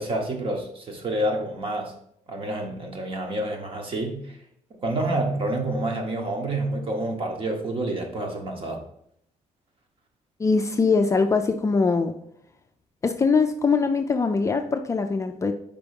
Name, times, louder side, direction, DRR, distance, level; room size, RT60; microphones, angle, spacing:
voice 1, 0.0-1.9 2.3-4.4 4.7-8.8, right 1 dB, 40° right, 2 dB, 1.2 m, -28 dB
voice 2, 10.4-12.1 13.0-15.5, left 4 dB, 25° left, 5 dB, 0.4 m, -22 dB
5.2 x 3.5 x 5.2 m, 0.73 s
cardioid pair, 130°, 13 cm